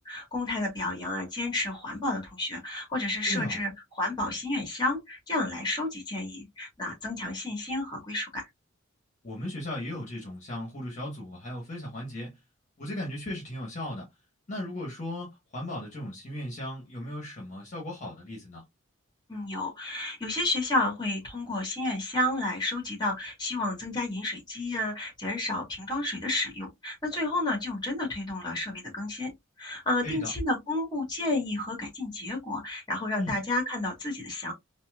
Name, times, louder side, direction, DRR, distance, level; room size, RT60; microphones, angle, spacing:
voice 1, 0.0-3.7 3.9-8.5 19.3-29.3 29.6-34.5, left 2 dB, 20° left, 1.7 m, -31 dB
voice 2, 3.3-3.6 9.2-12.4 12.8-14.1 14.5-18.6 30.0-30.3 33.2-33.4, left 1 dB, 35° left, 1.4 m, -36 dB
4.2 x 2.7 x 2.4 m
head